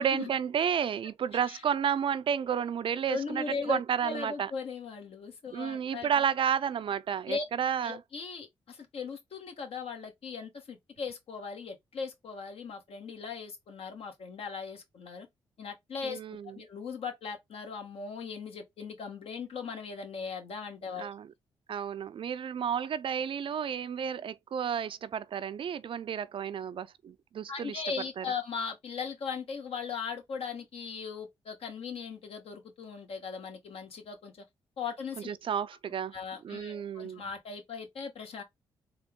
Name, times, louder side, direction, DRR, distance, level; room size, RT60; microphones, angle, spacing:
voice 1, 0.0-4.5 5.5-8.0 16.0-16.6 21.0-21.3 21.7-27.8 28.2-28.3 35.2-36.2 36.4-37.2, right 8 dB, 55° right, 0.4 m, -31 dB
voice 2, 3.1-6.1 7.3-7.4 7.8-15.3 15.6-21.1 27.5-34.3 34.8-35.4 36.1-38.4, left 5 dB, 70° left, 1.3 m, -38 dB
3.9 x 2.4 x 3.5 m
supercardioid pair, 50°, 11 cm